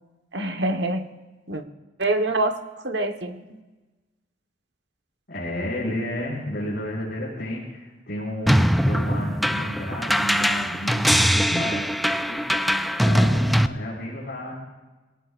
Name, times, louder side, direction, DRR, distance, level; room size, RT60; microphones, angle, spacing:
voice 1, 0.3-1.1 1.5-1.6 2.0-2.6 2.8-3.6, right 2 dB, 65° right, 6 dB, 1.3 m, -25 dB
voice 2, 5.3-11.9 12.3-12.5 13.0-14.6, left 1 dB, 60° left, -8 dB, 5.7 m, -31 dB
sound 1, 8.5-13.7, equal, ahead, 0.4 m, -21 dB
23.0 x 18.5 x 2.6 m, 1.2 s
head